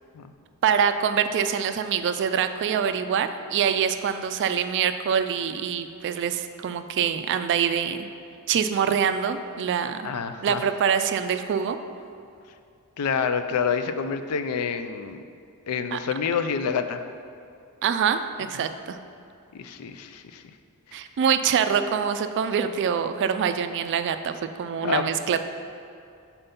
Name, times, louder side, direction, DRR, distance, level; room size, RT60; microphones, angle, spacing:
voice 1, 0.6-8.1 8.5-10.1 10.4-11.8 15.9-16.0 17.8-19.0 20.9-25.5, right 7 dB, 55° right, 9 dB, 0.3 m, -25 dB
voice 2, 10.0-10.6 13.0-15.2 15.7-17.0 19.5-20.4 24.8-25.1, left 6 dB, 85° left, 9 dB, 0.4 m, -27 dB
5.6 x 4.4 x 5.2 m, 2.5 s
head